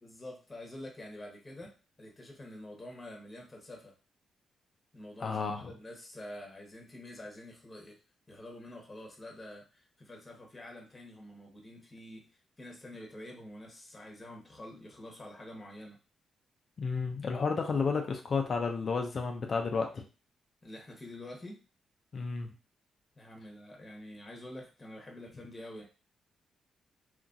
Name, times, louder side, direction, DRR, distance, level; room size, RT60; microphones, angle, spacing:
voice 1, 0.0-3.9 4.9-8.0 8.3-12.2 12.6-16.0 20.6-21.6 23.1-25.8, left 1 dB, 25° left, 0 dB, 1.0 m, -47 dB
voice 2, 5.2-5.7 16.8-20.0 22.1-22.5, left 4 dB, 50° left, 3 dB, 0.5 m, -31 dB
2.8 x 2.6 x 2.5 m, 0.34 s
cardioid pair, 65°, 0 cm